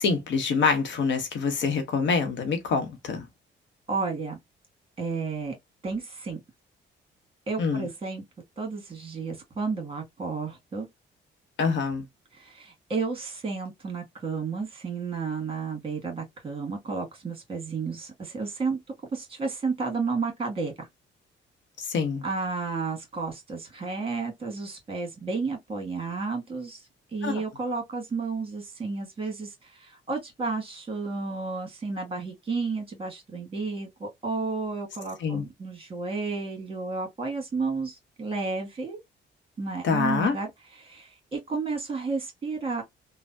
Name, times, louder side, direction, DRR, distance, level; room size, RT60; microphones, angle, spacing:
voice 1, 0.0-3.3 7.6-7.8 11.6-12.0 21.8-22.2 27.2-27.4 35.2-35.4 39.8-40.4, left 5 dB, 70° left, 0.9 m, -26 dB
voice 2, 3.9-4.4 5.0-5.5 5.8-6.4 7.5-8.2 8.6-10.9 12.3-18.8 19.1-20.9 22.2-26.8 27.1-39.0 39.6-40.5 40.8-42.8, right 4 dB, 25° right, 1.6 m, -32 dB
3.2 x 2.2 x 2.6 m
cardioid pair, 90°, 20 cm